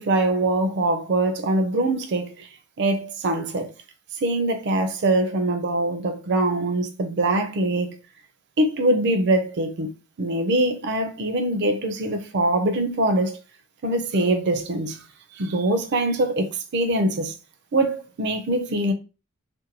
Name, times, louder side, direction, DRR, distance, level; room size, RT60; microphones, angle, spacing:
voice 1, 0.0-2.5 2.8-3.7 4.2-8.0 8.6-9.9 10.2-13.4 13.8-15.0 15.4-17.3 17.7-18.9, right 2 dB, 55° right, 0.5 m, -23 dB
2.6 x 2.1 x 2.8 m
head